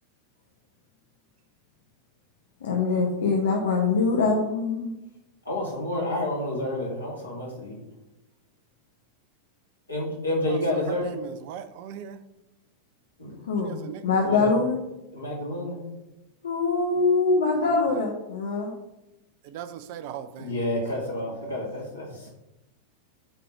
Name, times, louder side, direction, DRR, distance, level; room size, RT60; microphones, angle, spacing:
voice 1, 2.6-4.9 13.5-14.8 16.4-18.7, left 4 dB, 65° left, -1 dB, 1.1 m, -23 dB
voice 2, 5.4-7.8 9.9-11.1 13.2-13.4 14.2-14.5 15.1-15.8 20.4-22.3, left 1 dB, 80° left, -4 dB, 2.8 m, -29 dB
voice 3, 10.5-12.2 13.6-14.2 17.0-17.1 17.5-18.0 19.4-20.6 21.1-21.4, right 9 dB, 45° right, 12 dB, 0.5 m, -40 dB
8.0 x 3.8 x 5.7 m, 0.94 s
figure-of-eight pair, 90°, 0 cm